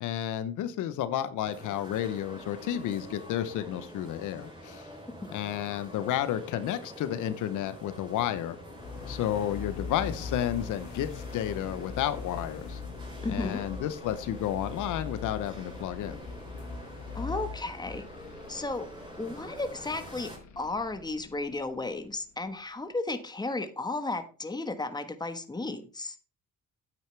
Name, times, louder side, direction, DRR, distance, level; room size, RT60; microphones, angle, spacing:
voice 1, 0.0-4.8 5.3-8.6 9.1-12.8 13.3-16.2, left 11 dB, 85° left, 12 dB, 0.8 m, -31 dB
sound 1, 1.4-20.4, equal, 15° right, 3.6 m, -46 dB
sound 2, 8.7-22.6, left 5 dB, 65° left, 1.7 m, -42 dB
voice 2, 13.2-13.6 17.1-18.1 18.5-18.9 19.2-26.2, left 2 dB, 15° left, 9 dB, 1.2 m, -34 dB
9.1 x 9.1 x 3.3 m, 0.37 s
cardioid pair, 90°, 30 cm